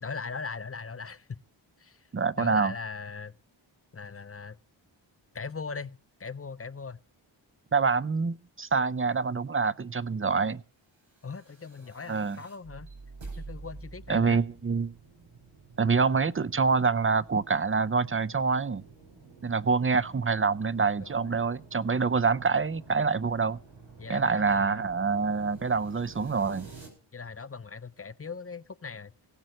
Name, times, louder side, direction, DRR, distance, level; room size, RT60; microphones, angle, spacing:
voice 1, 0.0-1.4 1.8-2.1 2.4-3.3 3.9-4.6 5.3-7.0 11.2-12.9 13.4-14.4 21.0-21.4 24.0-24.9 27.1-29.1, left 5 dB, 30° left, 0.6 m, -39 dB
voice 2, 2.1-2.7 7.7-10.6 12.1-12.4 14.1-14.9 15.8-18.8 19.4-23.6 24.1-26.7, right 4 dB, 25° right, 0.6 m, -26 dB
sound 1, 11.1-26.9, right 4 dB, 70° right, 5.1 m, -49 dB
16.5 x 6.3 x 7.7 m
cardioid pair, 45°, 48 cm